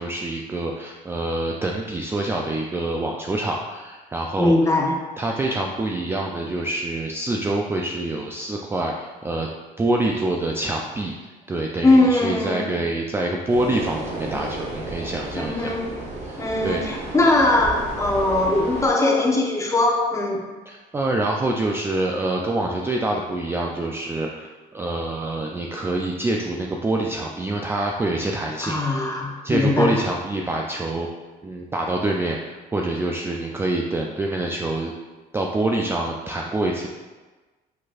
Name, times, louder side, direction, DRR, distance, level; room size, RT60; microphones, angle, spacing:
voice 1, 0.0-4.5 5.2-9.5 9.8-11.1 11.5-15.7 16.3-17.0 20.7-29.1 29.4-31.1 31.4-34.9 35.3-36.9, right 2 dB, 15° right, -1 dB, 0.3 m, -26 dB
voice 2, 4.4-5.0 11.8-12.8 15.4-15.9 16.4-20.4 28.6-30.0, left 2 dB, 20° left, -1 dB, 0.8 m, -20 dB
sound 1, 13.5-18.9, right 2 dB, 40° right, 1.2 m, -33 dB
5.0 x 4.0 x 2.4 m, 1.3 s
cardioid pair, 110°, 17 cm